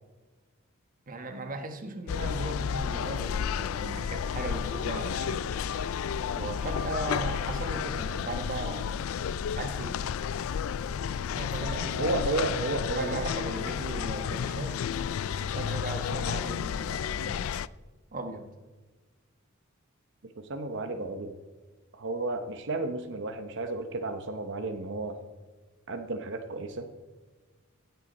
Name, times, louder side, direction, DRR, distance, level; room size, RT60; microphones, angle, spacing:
voice 1, 1.1-5.4 6.3-9.0 9.5-10.0 11.4-12.4 12.9-14.8 15.4-17.5 18.1-18.5, right 2 dB, 40° right, 7 dB, 1.2 m, -37 dB
sound 1, 2.1-17.7, left 7 dB, 70° left, 0.3 m, -32 dB
voice 2, 11.6-13.3 20.4-21.4 21.9-25.2 25.9-26.9, right 2 dB, 60° right, 7 dB, 0.9 m, -32 dB
15.5 x 8.1 x 4.2 m, 1.3 s
head